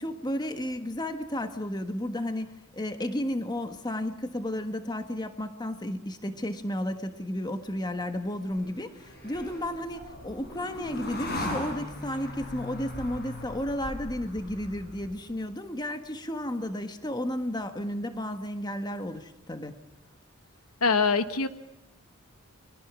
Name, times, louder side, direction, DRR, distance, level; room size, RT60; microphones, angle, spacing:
voice 1, 0.0-19.8, left 1 dB, 20° left, 7 dB, 1.4 m, -33 dB
sound 1, 7.9-15.3, left 1 dB, 45° left, 6.6 m, -39 dB
voice 2, 20.8-21.5, left 4 dB, 85° left, 10 dB, 1.4 m, -23 dB
30.0 x 22.5 x 6.2 m, 0.94 s
head